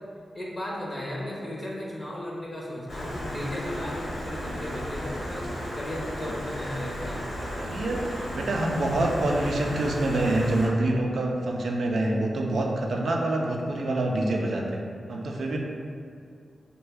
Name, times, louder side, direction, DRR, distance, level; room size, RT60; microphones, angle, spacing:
voice 1, 0.3-5.5 5.7-7.2, left 1 dB, 25° left, -4 dB, 0.6 m, -35 dB
Stream, 2.9-10.7, equal, 80° left, 0.8 m, -34 dB
voice 2, 7.6-8.1 8.3-14.8 15.1-15.6, right 1 dB, 75° right, 0 dB, 0.4 m, -26 dB
3.2 x 2.2 x 3.3 m, 2.2 s
cardioid pair, 70°, 0 cm